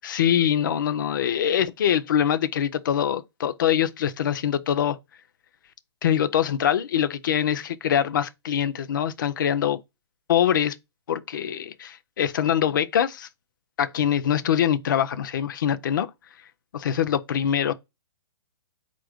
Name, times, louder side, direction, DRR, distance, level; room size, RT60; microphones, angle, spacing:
voice 1, 0.0-5.0 6.0-9.8 10.3-10.8 11.1-13.3 13.8-16.1 16.7-17.7, left 9 dB, 45° left, 0.4 m, -24 dB
4.2 x 2.5 x 4.7 m
hypercardioid pair, 165°, 14 cm